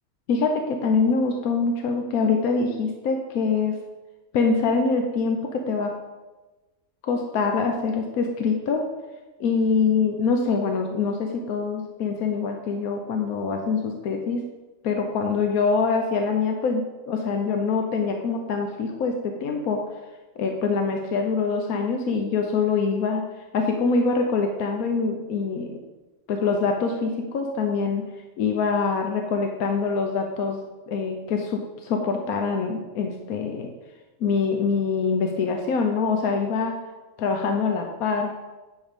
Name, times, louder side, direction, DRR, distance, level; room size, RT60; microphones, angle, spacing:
voice 1, 0.3-3.8 4.3-5.9 7.0-8.9 9.4-14.4 14.8-19.1 19.4-19.8 20.4-23.2 23.5-25.7 26.3-28.1 28.4-30.6 30.9-33.7 34.2-36.8 37.2-38.4, left 4 dB, 90° left, 3 dB, 1.3 m, -24 dB
10.0 x 4.7 x 5.1 m, 1.1 s
omnidirectional pair, 1.5 m